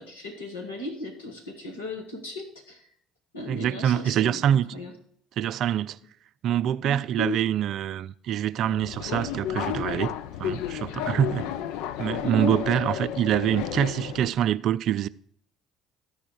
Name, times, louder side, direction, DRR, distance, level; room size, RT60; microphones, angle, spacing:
voice 1, 0.0-2.8 3.3-4.9 6.8-7.4 12.2-12.6, equal, 85° left, 1.5 m, -35 dB
voice 2, 3.5-4.7 5.4-6.0 6.4-11.5 12.0-15.1, right 10 dB, 55° right, 0.3 m, -25 dB
Subway metro underground, 8.6-14.3, left 10 dB, 70° left, 0.4 m, -32 dB
13.0 x 4.8 x 4.8 m
hypercardioid pair, 55°, 0 cm